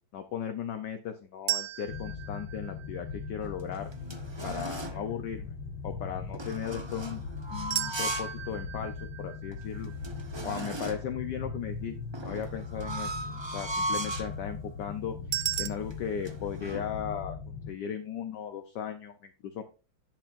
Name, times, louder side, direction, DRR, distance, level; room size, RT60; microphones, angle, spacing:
voice 1, 0.1-3.9 4.4-5.4 5.8-7.2 7.5-8.9 9.2-9.9 10.4-12.0 12.2-13.1 13.5-19.6, left 8 dB, 65° left, 7 dB, 1.3 m, -37 dB
sound 1, 1.5-3.6 7.7-10.8 15.3-15.7, right 13 dB, 65° right, 0.9 m, -36 dB
sound 2, 1.9-17.7, left 5 dB, 85° left, 2.0 m, -40 dB
sound 3, 3.4-5.0 6.3-8.4 8.8-8.9 9.5-9.6 9.8-11.2 12.1-14.4 15.0-15.3 15.6-16.9, right 1 dB, 45° right, 0.3 m, -37 dB
11.0 x 8.6 x 2.6 m, 0.32 s
omnidirectional pair, 2.2 m